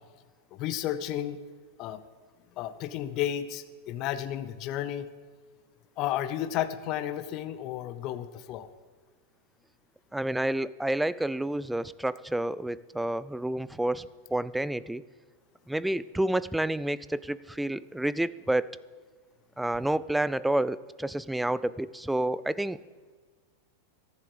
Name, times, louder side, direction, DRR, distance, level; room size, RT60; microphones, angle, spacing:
voice 1, 0.5-1.4 1.8-2.0 2.6-5.1 6.0-8.7, left 11 dB, 40° left, 12 dB, 0.8 m, -32 dB
voice 2, 10.1-15.0 15.7-18.7 19.6-22.8, right 1 dB, 5° right, 18 dB, 0.4 m, -29 dB
14.5 x 11.0 x 5.0 m, 1.5 s
supercardioid pair, 140°, 0 cm